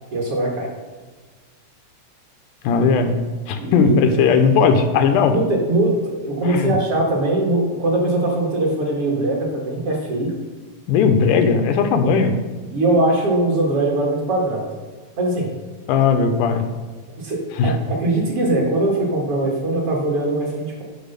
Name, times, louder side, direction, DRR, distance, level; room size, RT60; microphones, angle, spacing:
voice 1, 0.1-0.7 3.6-4.2 5.3-10.3 12.0-12.1 12.7-14.7 15.2-15.5 17.2-20.8, right 2 dB, 50° right, -2 dB, 2.3 m, -21 dB
voice 2, 2.6-3.2 3.5-5.4 6.4-6.8 10.9-12.3 15.9-16.6 17.6-17.7, left 5 dB, 80° left, 6 dB, 2.3 m, -17 dB
10.0 x 4.7 x 6.7 m, 1.4 s
omnidirectional pair, 3.7 m